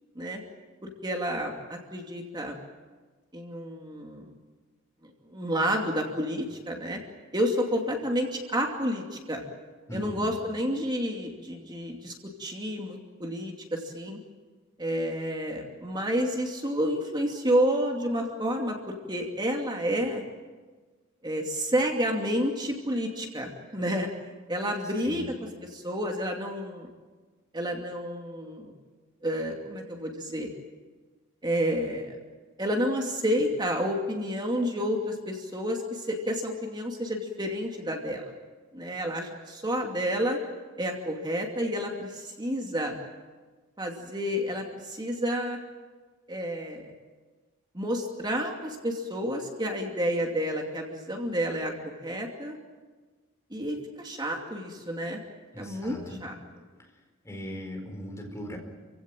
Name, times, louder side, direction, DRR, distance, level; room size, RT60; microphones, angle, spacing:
voice 1, 0.8-2.6 3.3-4.3 5.0-7.0 7.3-9.4 9.9-12.1 12.4-14.2 14.8-18.7 19.1-20.2 21.2-24.1 24.5-25.3 25.7-26.9 27.5-28.7 29.2-30.5 31.4-32.2 32.6-38.3 38.7-40.4 40.8-42.9 43.8-45.6 46.3-46.9 47.7-52.6 53.5-55.2 55.6-56.4, equal, 20° right, 1 dB, 2.7 m, -30 dB
voice 2, 9.9-10.3 25.0-25.3 55.5-56.3 57.2-58.6, equal, 15° left, 2 dB, 4.6 m, -39 dB
27.5 x 16.5 x 9.1 m, 1.4 s
head